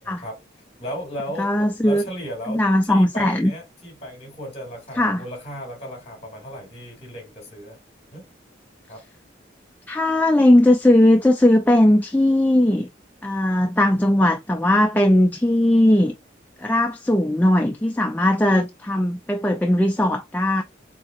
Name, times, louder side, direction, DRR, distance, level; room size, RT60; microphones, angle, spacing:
voice 1, 0.0-0.4 0.8-7.8 8.1-8.3 8.9-9.0, equal, 30° left, 2.4 m, -35 dB
voice 2, 1.4-2.0 2.5-3.5 5.0-5.2 9.9-12.9 13.2-16.1 16.6-20.6, left 1 dB, 10° left, 0.3 m, -18 dB
4.5 x 3.7 x 2.4 m
head